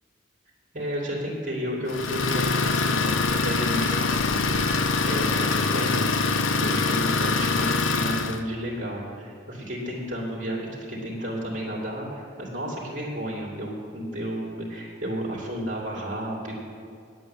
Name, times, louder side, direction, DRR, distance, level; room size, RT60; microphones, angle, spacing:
voice 1, 0.7-16.6, equal, 40° right, -4 dB, 2.6 m, -32 dB
Idling, 1.9-8.4, left 4 dB, 85° left, 0.7 m, -24 dB
9.7 x 8.4 x 7.8 m, 2.3 s
head